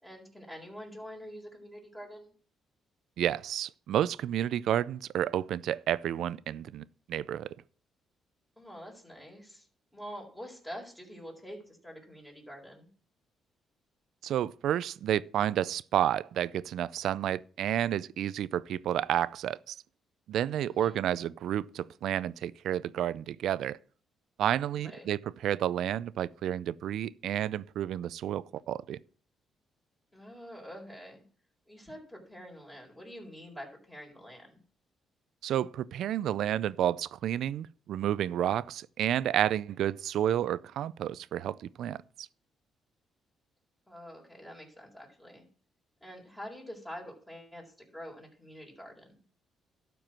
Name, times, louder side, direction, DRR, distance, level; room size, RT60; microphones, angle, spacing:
voice 1, 0.0-2.3 8.6-9.7 9.9-12.9 20.7-21.0 24.7-25.1 30.1-31.2 31.7-34.6 43.9-45.5 46.0-49.2, equal, 10° left, 4.3 m, -46 dB
voice 2, 3.2-7.5 14.2-19.7 20.3-23.8 24.4-29.0 35.4-42.3, right 11 dB, 75° right, 0.4 m, -30 dB
12.0 x 4.6 x 7.5 m
cardioid pair, 90°, 0 cm